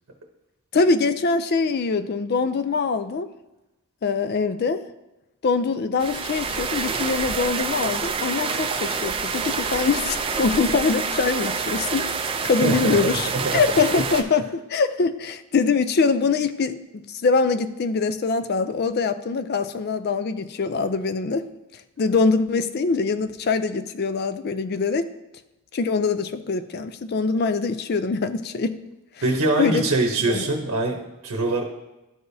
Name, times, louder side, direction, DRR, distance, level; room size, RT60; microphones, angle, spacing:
voice 1, 0.7-3.3 4.0-4.9 5.4-12.1 12.4-21.5 22.0-25.1 25.7-28.8 29.6-29.8 30.3-30.5, left 4 dB, 45° left, 12 dB, 0.4 m, -23 dB
sound 1, 6.0-14.2, right 5 dB, 25° right, 0.4 m, -27 dB
voice 2, 12.6-13.0 13.3-13.6 29.2-31.6, right 2 dB, 85° right, 2 dB, 0.9 m, -23 dB
12.0 x 4.9 x 2.7 m, 0.99 s
head